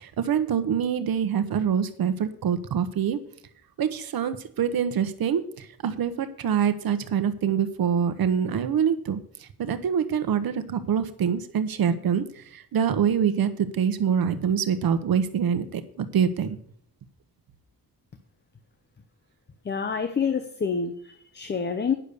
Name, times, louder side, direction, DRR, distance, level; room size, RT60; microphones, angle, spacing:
voice 1, 0.0-3.2 3.8-16.6, right 8 dB, 70° right, 10 dB, 1.0 m, -25 dB
voice 2, 19.6-21.9, left 6 dB, 30° left, 9 dB, 0.7 m, -27 dB
9.8 x 6.6 x 6.9 m, 0.64 s
wide cardioid pair, 145°, 37 cm